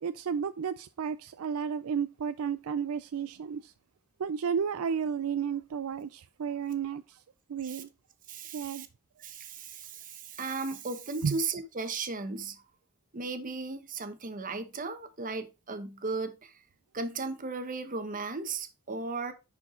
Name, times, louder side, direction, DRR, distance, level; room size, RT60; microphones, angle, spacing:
voice 1, 0.0-3.7 4.2-7.2 7.5-7.9 8.5-8.9 11.2-11.4, right 7 dB, 65° right, 0.4 m, -32 dB
voice 2, 8.3-8.9 9.2-12.6 13.1-16.6 16.9-19.3, right 3 dB, 35° right, 1.0 m, -36 dB
10.5 x 4.6 x 3.7 m
head